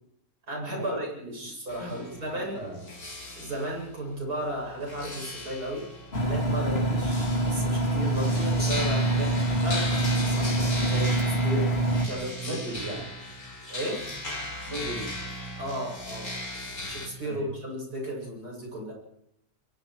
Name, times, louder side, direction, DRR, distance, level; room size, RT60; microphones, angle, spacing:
voice 1, 0.5-2.6 3.4-5.9 6.2-12.6 13.7-14.1 15.6-16.3 16.9-18.9, right 1 dB, 80° right, 0 dB, 8.2 m, -34 dB
sound 1, 1.7-17.1, left 1 dB, 65° left, 4.8 m, -37 dB
voice 2, 2.3-2.9 12.4-13.0 14.7-15.2 17.2-17.5, right 2 dB, 50° right, 0 dB, 6.4 m, -36 dB
Engine, 6.1-12.1, right 2 dB, 40° left, 2.7 m, -25 dB
30.0 x 22.5 x 4.7 m, 0.76 s
omnidirectional pair, 1.6 m